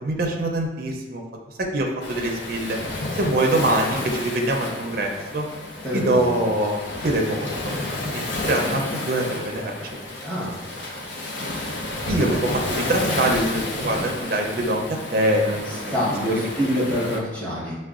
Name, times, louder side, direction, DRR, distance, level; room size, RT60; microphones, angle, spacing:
voice 1, 0.0-1.2 1.6-2.8 3.2-5.5 5.9-7.7 8.0-9.7 10.7-11.0 12.1-14.8 15.1-15.9, right 1 dB, 55° right, 1 dB, 0.4 m, -24 dB
Waves surf, 2.0-17.2, left 2 dB, 80° left, 0.6 m, -31 dB
voice 2, 5.8-6.3 10.2-10.5 15.6-17.8, equal, 10° left, -9 dB, 1.0 m, -26 dB
5.4 x 2.1 x 2.4 m, 1.1 s
head